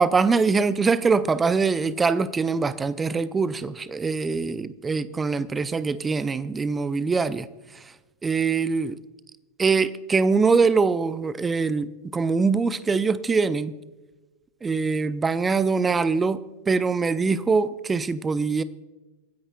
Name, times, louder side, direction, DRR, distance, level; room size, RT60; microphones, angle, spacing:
voice 1, 0.0-7.5 8.2-9.0 9.6-13.7 14.6-16.4 16.7-18.6, right 4 dB, 15° right, 16 dB, 0.5 m, -23 dB
26.5 x 10.0 x 2.3 m, 1.2 s
figure-of-eight pair, 90°, 0 cm